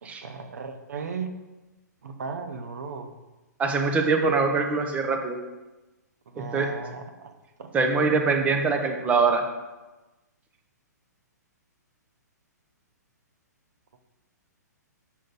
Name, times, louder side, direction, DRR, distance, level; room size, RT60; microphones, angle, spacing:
voice 1, 0.0-1.3 2.0-3.1 6.3-7.3 7.6-7.7, right 5 dB, 65° right, 7 dB, 0.7 m, -36 dB
voice 2, 3.6-5.4 6.5-6.8 7.7-9.4, right 4 dB, 15° right, 4 dB, 0.8 m, -23 dB
6.4 x 3.8 x 5.3 m, 1.1 s
figure-of-eight pair, 120°, 10 cm